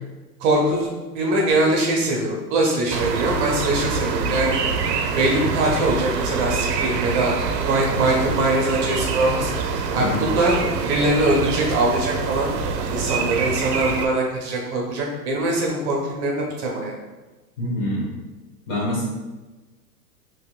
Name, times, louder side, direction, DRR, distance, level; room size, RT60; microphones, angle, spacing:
voice 1, 0.4-0.9 1.1-4.6 5.1-7.4 7.7-9.5 9.9-12.5 12.9-16.9, right 1 dB, 45° right, -1 dB, 0.8 m, -22 dB
sound 1, 2.9-14.1, right 5 dB, 75° right, 0.6 m, -25 dB
voice 2, 17.6-18.1 18.7-19.0, left 1 dB, 30° left, -5 dB, 1.4 m, -25 dB
4.2 x 3.0 x 2.4 m, 1.2 s
hypercardioid pair, 115°, 50 cm